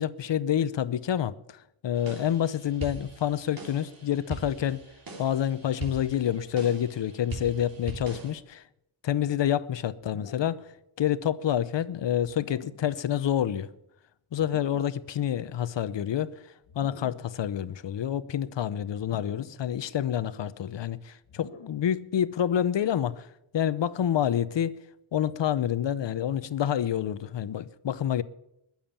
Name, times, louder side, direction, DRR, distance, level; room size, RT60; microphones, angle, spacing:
voice 1, 0.0-4.8 5.2-8.6 9.0-10.7 11.0-13.7 14.3-23.3 23.5-24.8 25.1-28.2, left 10 dB, 60° left, 0.8 m, -28 dB
sound 1, 2.0-8.3, right 3 dB, 45° right, 3.4 m, -42 dB
sound 2, 10.0-10.7 12.2-13.0 14.4-15.1 16.6-17.4 19.0-19.7 21.3-22.0, left 5 dB, 80° left, 2.0 m, -48 dB
21.0 x 7.3 x 7.3 m
wide cardioid pair, 125°, 50 cm